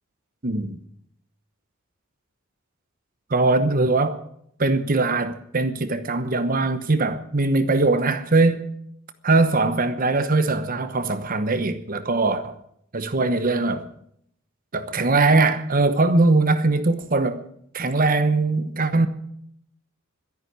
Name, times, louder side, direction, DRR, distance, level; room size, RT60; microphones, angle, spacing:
voice 1, 0.4-0.8 3.3-4.2 4.6-8.7 9.2-12.6 12.9-13.9 14.7-17.4 17.7-19.1, right 3 dB, 40° right, 1.1 m, -21 dB
12.5 x 11.0 x 9.4 m
head